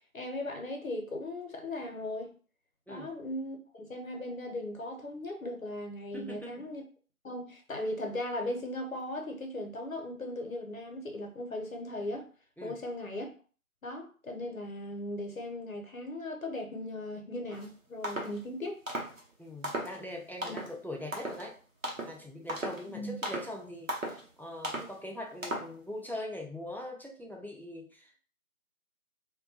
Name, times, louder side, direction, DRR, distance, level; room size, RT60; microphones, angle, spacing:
voice 1, 0.1-2.3 2.9-6.8 7.2-12.3 12.6-13.3 13.8-18.8 20.4-20.6 22.9-23.2, left 1 dB, 65° left, 0.7 m, -38 dB
voice 2, 6.1-6.6 12.6-12.8 19.4-21.6 22.0-28.2, left 1 dB, 5° left, 0.3 m, -42 dB
sound 1, 17.5-17.7 18.0-18.4 18.9-19.2 19.6-20.0 20.4-20.7 21.1-21.5 21.8-22.2 22.5-22.9 23.2-23.5 23.9-24.2 24.6-24.9 25.4-25.7, right 1 dB, 60° right, 0.7 m, -36 dB
2.2 x 2.1 x 2.7 m
figure-of-eight pair, 180°, 44 cm